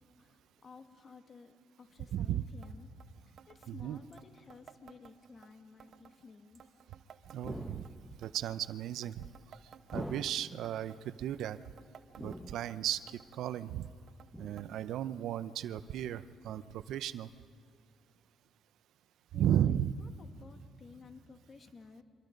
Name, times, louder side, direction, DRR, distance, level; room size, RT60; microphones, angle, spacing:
voice 1, 0.2-2.9 3.3-6.6 19.3-22.0, left 4 dB, 40° left, 7 dB, 1.7 m, -55 dB
voice 2, 2.1-2.4 3.7-4.0 7.3-7.9 8.2-9.3 9.9-11.6 12.2-13.9 14.4-17.3 19.3-19.9, right 11 dB, 80° right, 14 dB, 0.6 m, -34 dB
sound 1, 2.6-2.7 3.0-3.1 3.4-3.7 4.1-5.5 5.8-6.2 6.5-7.9 8.2-8.6 9.0-10.3 10.6-11.0 11.4-12.8 13.1-13.4 13.8-14.3 14.6-14.7 14.9-15.0 15.8-15.9 16.7-16.8, right 7 dB, 60° right, 1.0 m, -57 dB
sound 2, 7.4-8.3 9.9-10.7 12.2-12.9 14.3-14.9 16.5-16.6, equal, 5° left, 1.1 m, -44 dB
28.0 x 24.5 x 5.3 m, 2.5 s
cardioid pair, 90°, 0 cm